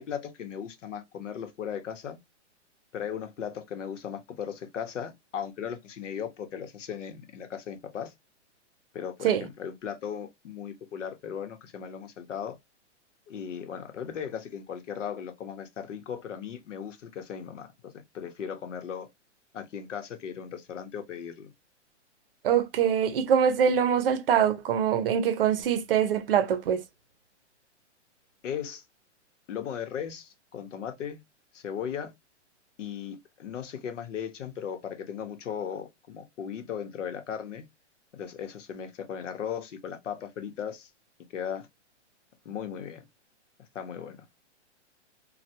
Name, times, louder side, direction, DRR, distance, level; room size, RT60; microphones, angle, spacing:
voice 1, 0.0-2.2 2.9-8.1 8.9-12.6 13.3-17.7 18.1-19.1 19.5-21.5 28.4-28.8 29.5-31.2 31.5-32.1 32.8-37.7 38.1-40.9 41.3-41.7 42.4-43.0 43.7-44.2, left 8 dB, 80° left, 0.9 m, -37 dB
voice 2, 22.4-26.8, right 8 dB, 50° right, 0.6 m, -24 dB
3.2 x 2.3 x 2.8 m
hypercardioid pair, 170°, 36 cm